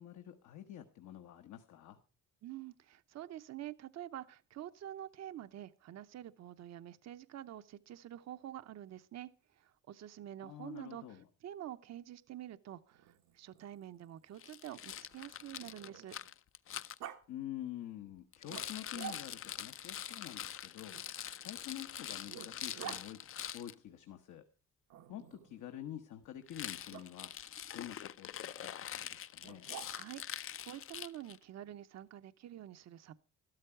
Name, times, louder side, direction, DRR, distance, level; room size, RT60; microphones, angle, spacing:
voice 1, 0.0-2.0 10.4-11.3 17.3-21.0 21.4-23.2 23.5-24.4 25.1-27.3 27.7-29.7, left 12 dB, 80° left, 6 dB, 1.2 m, -47 dB
voice 2, 2.4-9.3 9.6-16.2 29.9-33.2, right 12 dB, 60° right, 12 dB, 0.8 m, -48 dB
Growling, 12.9-16.3 17.0-17.2 18.5-19.6 20.9-23.0 24.9-25.6 26.9-27.1 29.4-30.3, right 10 dB, 90° right, 1.3 m, -50 dB
Rattle, 14.4-17.0 18.3-23.7 26.5-31.4, left 10 dB, 45° left, 0.5 m, -44 dB
12.5 x 12.5 x 4.4 m, 0.35 s
cardioid pair, 90°, 30 cm